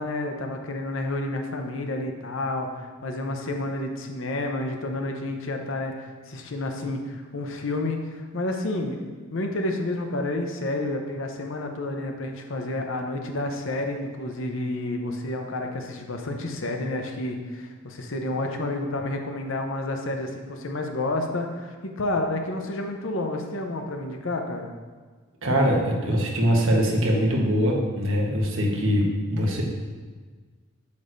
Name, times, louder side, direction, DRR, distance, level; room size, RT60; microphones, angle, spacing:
voice 1, 0.0-24.7, left 2 dB, 60° left, 4 dB, 0.7 m, -30 dB
voice 2, 25.4-29.6, equal, 65° right, -1 dB, 1.2 m, -22 dB
8.5 x 6.2 x 2.6 m, 1.4 s
head